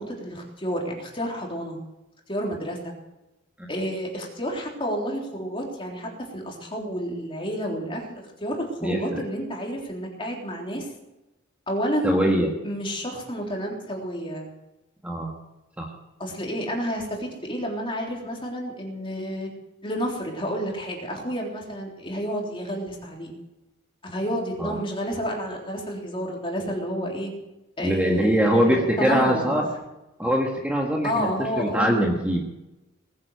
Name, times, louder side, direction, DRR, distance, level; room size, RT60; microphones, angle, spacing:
voice 1, 0.0-1.8 2.3-2.9 3.7-10.9 11.7-12.2 12.6-14.5 16.2-19.5 19.8-23.3 24.0-27.3 27.8-29.4 31.0-32.1, equal, 25° left, -1 dB, 3.5 m, -30 dB
voice 2, 8.8-9.2 12.0-12.5 15.0-15.3 15.8-15.9 24.6-24.8 27.8-29.7 30.2-32.4, equal, 5° right, -1 dB, 1.5 m, -23 dB
19.5 x 9.7 x 6.8 m, 0.98 s
head